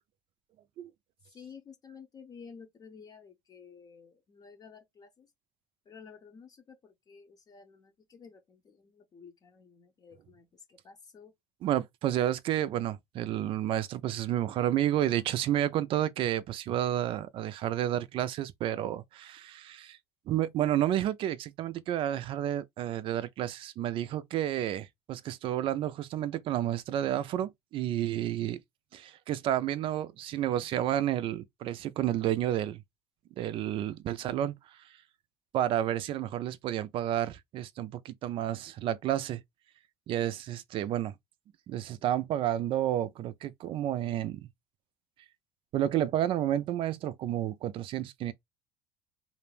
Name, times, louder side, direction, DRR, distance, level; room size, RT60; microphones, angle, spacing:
voice 1, 1.2-5.3 5.8-11.3, left 6 dB, 35° left, 0.7 m, -52 dB
voice 2, 11.6-20.0 20.3-28.6 28.9-32.8 33.4-35.0 35.5-39.4 40.1-41.1 41.7-44.5 45.7-48.3, right 11 dB, 50° right, 0.4 m, -31 dB
2.5 x 2.0 x 3.2 m
hypercardioid pair, 75°, 11 cm